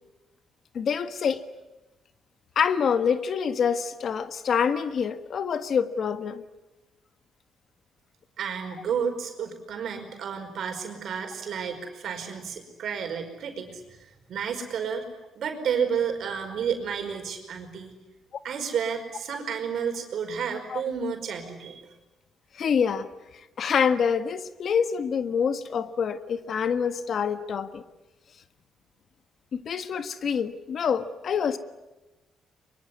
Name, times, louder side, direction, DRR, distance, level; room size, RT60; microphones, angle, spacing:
voice 1, 0.7-1.4 2.5-6.4 20.7-20.8 22.5-23.1 23.6-27.8 29.5-31.6, left 7 dB, 55° left, 10 dB, 1.5 m, -26 dB
voice 2, 8.4-15.0 15.3-17.9 18.4-21.9, right 7 dB, 65° right, 5 dB, 5.0 m, -31 dB
23.5 x 23.0 x 9.7 m, 1.1 s
cardioid pair, 90°, 0 cm